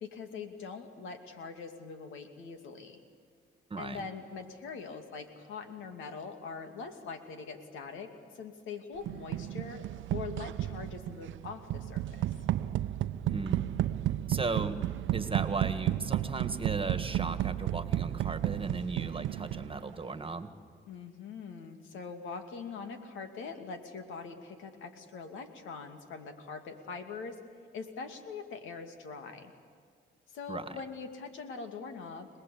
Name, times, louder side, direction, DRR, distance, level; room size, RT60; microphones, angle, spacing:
voice 1, 0.0-3.0 3.8-9.8 10.1-12.2 20.9-27.4 27.7-29.5 30.3-32.3, left 5 dB, 85° left, 7 dB, 2.5 m, -43 dB
voice 2, 3.7-4.1 13.2-13.7 14.3-14.8 15.1-20.5 30.5-30.8, right 3 dB, 30° right, 10 dB, 1.9 m, -36 dB
sound 1, 9.1-19.9, right 13 dB, 80° right, 0.7 m, -33 dB
26.0 x 19.5 x 8.5 m, 2.1 s
cardioid pair, 70°, 20 cm